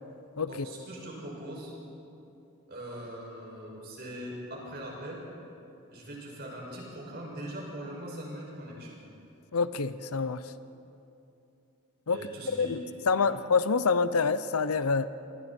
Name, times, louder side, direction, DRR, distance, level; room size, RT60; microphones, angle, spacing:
voice 1, 0.5-1.7 2.7-5.2 5.9-9.0 12.1-12.7 13.1-13.3, right 1 dB, 45° right, -3 dB, 6.5 m, -41 dB
voice 2, 9.5-10.4 12.1-12.2 12.6-12.8 13.1-15.1, left 5 dB, 85° left, 13 dB, 0.8 m, -26 dB
27.5 x 24.0 x 4.4 m, 2.7 s
head